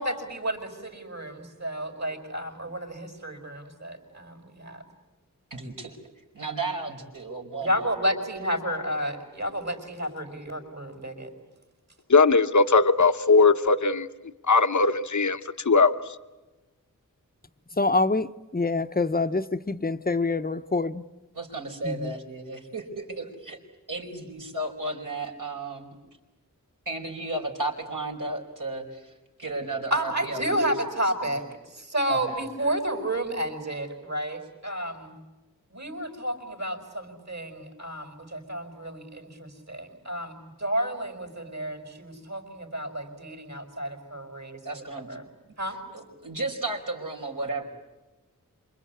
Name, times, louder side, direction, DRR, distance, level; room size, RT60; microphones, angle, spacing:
voice 1, 0.0-4.8 7.6-11.3 29.9-31.4 31.7-35.1 35.7-45.2 45.6-45.8, right 1 dB, 55° right, 4 dB, 5.4 m, -31 dB
voice 2, 5.5-6.0 6.3-7.9 21.3-23.6 23.9-26.0 26.9-29.1 29.4-30.7 31.2-31.3 32.1-32.4 44.7-45.2 45.9-47.7, right 2 dB, 70° right, 0 dB, 5.1 m, -34 dB
voice 3, 12.1-14.1 14.5-15.4 15.6-15.9, left 4 dB, 60° left, 9 dB, 1.0 m, -19 dB
voice 4, 17.8-21.0 21.8-22.1, left 3 dB, 25° left, 11 dB, 0.9 m, -26 dB
27.0 x 24.5 x 8.6 m, 1.1 s
wide cardioid pair, 55°, 33 cm